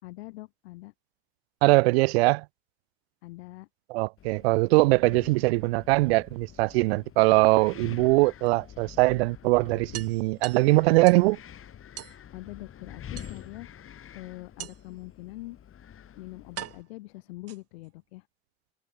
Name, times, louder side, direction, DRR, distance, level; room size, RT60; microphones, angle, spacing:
voice 1, 0.0-0.9 3.2-3.7 12.3-13.7 14.1-15.6 16.2-18.3, left 20 dB, 90° left, 7.0 m, -43 dB
voice 2, 1.6-2.4 3.9-11.4, right 23 dB, 90° right, 0.6 m, -22 dB
Wind, 4.2-16.8, left 9 dB, 45° left, 3.9 m, -47 dB
sound 1, 5.9-7.0 8.4-8.5 8.9-9.0 9.3-9.4 9.9-11.3 12.0-12.2 13.2-13.7 14.6-15.0 15.8-15.9 16.6-17.9, right 12 dB, 50° right, 1.8 m, -43 dB
supercardioid pair, 85°, 30 cm